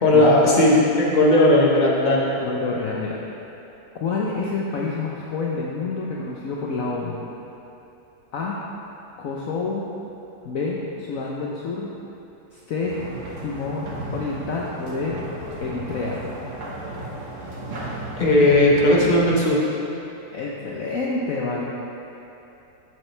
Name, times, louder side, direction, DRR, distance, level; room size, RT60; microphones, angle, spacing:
voice 1, 0.0-2.4 18.2-19.6, left 1 dB, 30° left, -4 dB, 1.4 m, -16 dB
voice 2, 2.4-3.2 4.0-7.2 8.3-8.6 9.2-9.8 10.4-11.9 12.5-13.0 13.4-15.2 15.6-16.3 20.3-21.6, left 4 dB, 60° left, -4 dB, 1.1 m, -28 dB
sound 1, 12.8-19.2, right 1 dB, 65° right, 2.1 m, -35 dB
13.0 x 7.6 x 3.3 m, 2.9 s
omnidirectional pair, 1.9 m